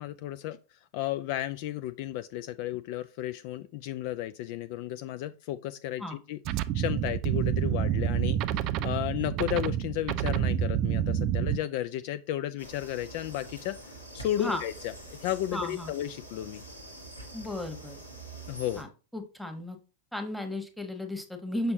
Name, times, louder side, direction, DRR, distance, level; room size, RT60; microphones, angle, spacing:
voice 1, 0.0-6.4 6.7-16.6 18.5-18.8, left 13 dB, 45° left, 0.3 m, -33 dB
sound 1, 6.5-11.6, right 10 dB, 40° right, 0.4 m, -28 dB
sound 2, 12.6-18.8, right 2 dB, 85° left, 1.5 m, -45 dB
voice 2, 15.5-15.9 17.3-18.0 18.8-18.9 19.1-19.8 20.1-21.7, left 1 dB, ahead, 1.2 m, -34 dB
6.8 x 5.1 x 2.8 m
figure-of-eight pair, 90°, 0 cm